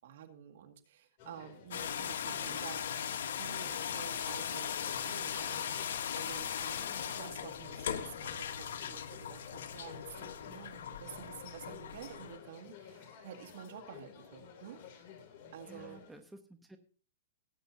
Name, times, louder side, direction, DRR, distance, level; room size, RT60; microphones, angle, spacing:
voice 1, 0.0-2.8 3.3-14.8 15.5-16.0, right 9 dB, 60° right, 3 dB, 2.0 m, -50 dB
sound 1, 1.2-16.1, left 7 dB, 45° left, 2.9 m, -53 dB
sound 2, 1.7-12.4, left 8 dB, 75° left, 1.1 m, -38 dB
voice 2, 15.6-16.8, equal, 5° right, 6 dB, 0.9 m, -53 dB
17.5 x 8.9 x 2.7 m, 0.39 s
hypercardioid pair, 150°, 0 cm